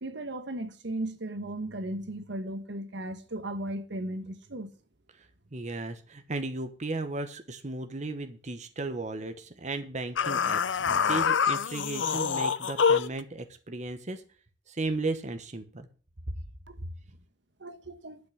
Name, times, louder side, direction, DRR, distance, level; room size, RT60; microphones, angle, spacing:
voice 1, 0.0-4.7 16.7-16.8 17.6-18.2, right 1 dB, 70° right, 1.2 m, -36 dB
voice 2, 5.5-14.2 14.7-15.9, right 2 dB, 40° right, 1.1 m, -35 dB
sound 1, 10.2-13.2, left 6 dB, 90° left, 0.6 m, -26 dB
11.5 x 6.0 x 8.5 m
head